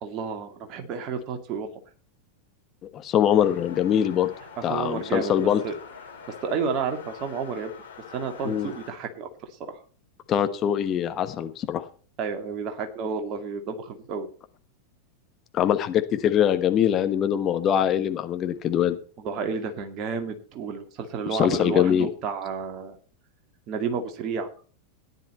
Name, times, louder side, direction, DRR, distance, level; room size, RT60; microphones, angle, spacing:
voice 1, 0.0-1.7 4.6-5.3 5.6-5.7 6.4-7.7 8.1-9.3 9.7-9.8 12.2-14.3 19.2-23.0 23.7-24.5, right 5 dB, 35° right, 6 dB, 2.3 m, -31 dB
voice 2, 2.9-4.3 4.6-5.6 8.4-8.7 10.3-11.8 15.5-19.0 21.3-22.1, left 10 dB, 30° left, 9 dB, 1.1 m, -23 dB
sound 1, 3.3-8.9, left 6 dB, 70° left, 5.6 m, -45 dB
14.5 x 10.5 x 4.4 m, 0.41 s
figure-of-eight pair, 90°, 0 cm